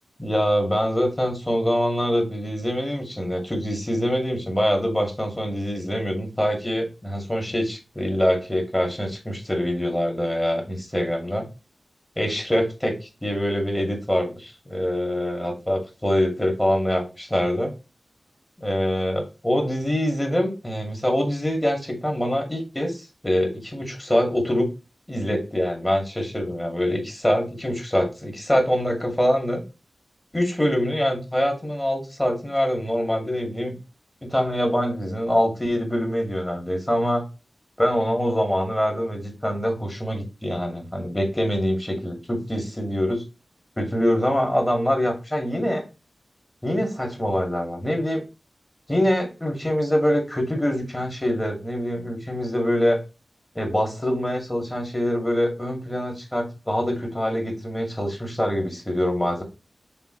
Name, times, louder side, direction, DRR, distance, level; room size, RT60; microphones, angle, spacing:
voice 1, 0.2-11.5 12.2-12.9 13.2-17.7 18.6-23.0 23.2-24.7 25.1-29.6 30.3-33.8 34.2-37.2 37.8-43.2 43.8-45.8 46.6-48.2 48.9-53.0 53.5-59.4, equal, 10° left, 3 dB, 2.3 m, -24 dB
6.8 x 3.7 x 3.9 m, 0.29 s
wide cardioid pair, 105°, 0 cm